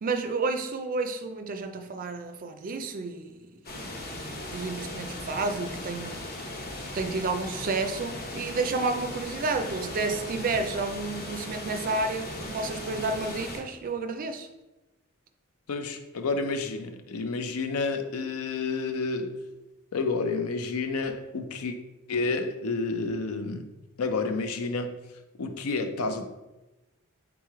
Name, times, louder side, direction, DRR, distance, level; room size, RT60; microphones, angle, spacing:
voice 1, 0.0-3.5 3.9-6.2 6.9-14.5, right 3 dB, 40° right, 7 dB, 0.4 m, -31 dB
sound 1, 3.6-13.6, left 1 dB, 45° left, 0.7 m, -38 dB
voice 2, 15.7-19.4 19.9-21.8 22.1-23.7 24.0-25.0 25.4-26.3, left 3 dB, 90° left, 7 dB, 0.5 m, -30 dB
3.6 x 3.0 x 4.7 m, 1.0 s
head